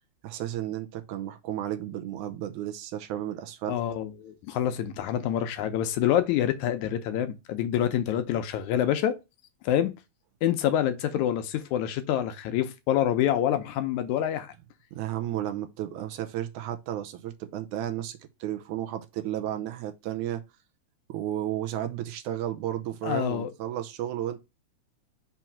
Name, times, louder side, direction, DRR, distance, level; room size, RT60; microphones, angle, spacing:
voice 1, 0.2-3.8 14.9-20.4 21.1-24.4, right 12 dB, 80° right, 2.1 m, -33 dB
voice 2, 3.7-9.2 9.6-9.9 10.4-14.5 23.0-23.5, left 10 dB, 75° left, 2.0 m, -26 dB
5.9 x 3.1 x 5.7 m
omnidirectional pair, 3.6 m